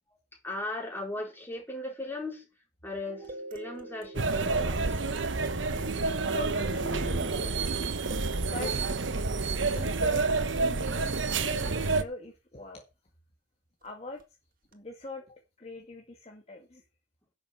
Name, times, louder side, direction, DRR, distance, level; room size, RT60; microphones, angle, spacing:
voice 1, 0.4-2.5 2.8-5.0, left 2 dB, 10° left, 4.5 m, -37 dB
sound 1, 3.1-10.0 14.2-14.3 14.7-14.8, right 2 dB, 50° right, 2.0 m, -44 dB
sound 2, 4.1-12.0, right 3 dB, 75° right, 1.1 m, -29 dB
voice 2, 6.3-7.5 8.4-9.0 9.7-11.1 11.4-12.8 13.8-14.2 14.7-16.8, left 2 dB, 35° left, 2.0 m, -42 dB
11.0 x 6.9 x 7.0 m
head